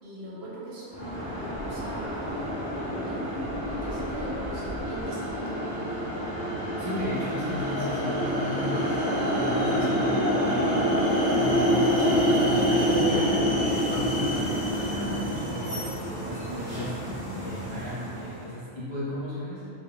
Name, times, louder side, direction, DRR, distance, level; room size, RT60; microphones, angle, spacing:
voice 1, 0.0-6.0 9.8-9.9, right 1 dB, 65° right, -6 dB, 0.8 m, -41 dB
sound 1, 0.9-18.4, equal, 15° left, 0.8 m, -27 dB
sound 2, 1.8-13.4 15.6-16.4, right 1 dB, 75° left, 1.0 m, -43 dB
voice 2, 6.8-9.0 9.3-10.8 11.3-15.9 16.2-19.7, left 1 dB, 30° right, -8 dB, 0.6 m, -35 dB
2.3 x 2.1 x 3.2 m, 2.6 s
omnidirectional pair, 1.2 m